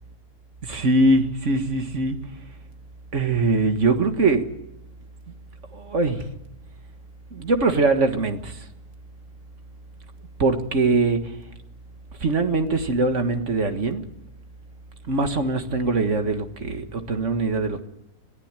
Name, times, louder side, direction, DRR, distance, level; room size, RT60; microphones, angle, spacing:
voice 1, 0.6-2.2 3.1-4.5 5.7-6.3 7.3-8.7 10.4-11.3 12.2-14.1 15.1-17.8, right 3 dB, 50° right, 2.0 m, -22 dB
22.0 x 14.0 x 9.0 m
omnidirectional pair, 1.7 m